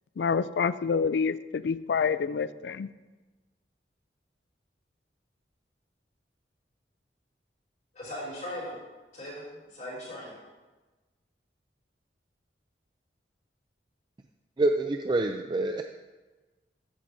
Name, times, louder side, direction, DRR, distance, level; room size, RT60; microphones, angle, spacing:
voice 1, 0.2-2.9, left 5 dB, 70° left, 15 dB, 0.3 m, -27 dB
voice 2, 7.9-8.7 9.1-10.3, equal, 40° left, -8 dB, 3.2 m, -39 dB
voice 3, 14.6-15.8, right 2 dB, 25° right, 5 dB, 0.4 m, -26 dB
13.5 x 8.4 x 2.7 m, 1.2 s
head